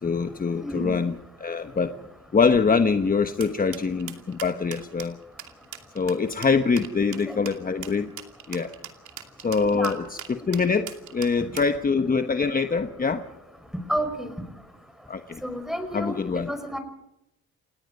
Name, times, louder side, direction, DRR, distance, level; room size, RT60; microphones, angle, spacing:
voice 1, 0.0-1.1 1.4-2.0 2.3-5.2 5.9-8.1 8.5-8.7 9.4-10.0 10.3-13.2 15.1-15.4 15.9-16.5, left 5 dB, 30° left, 8 dB, 1.2 m, -24 dB
voice 2, 0.6-1.0 7.3-7.4 9.7-9.9 13.9-14.3 15.4-16.2 16.4-16.8, equal, ahead, 8 dB, 5.3 m, -29 dB
sound 1, 3.4-11.8, right 10 dB, 75° right, 2.6 m, -40 dB
29.5 x 18.0 x 5.5 m, 0.84 s
cardioid pair, 90°, 30 cm